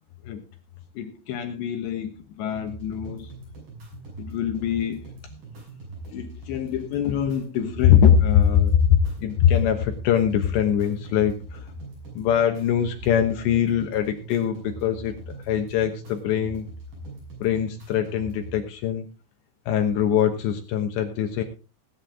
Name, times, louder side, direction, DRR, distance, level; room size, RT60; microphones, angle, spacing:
voice 1, 1.0-3.3 4.2-5.0 6.1-11.6 12.1-15.2 15.4-16.7 17.4-19.1 19.7-21.4, left 9 dB, 70° left, 5 dB, 3.1 m, -23 dB
sound 1, 2.6-18.6, right 2 dB, 45° right, 7.8 m, -41 dB
18.5 x 9.6 x 3.6 m, 0.32 s
omnidirectional pair, 5.5 m